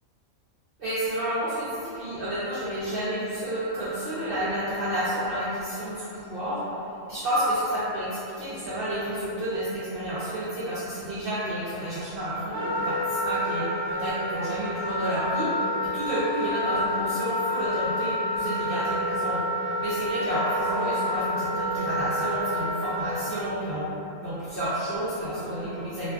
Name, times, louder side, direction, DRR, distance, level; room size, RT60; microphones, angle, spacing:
voice 1, 0.8-6.6 7.1-15.5 15.9-19.4 19.8-23.9 24.2-26.1, right 1 dB, 70° right, -12 dB, 0.5 m, -30 dB
Wind instrument woodwind instrument, 12.5-23.2, equal, 55° left, 0.9 m, -29 dB
2.4 x 2.3 x 2.2 m, 2.8 s
omnidirectional pair, 1.5 m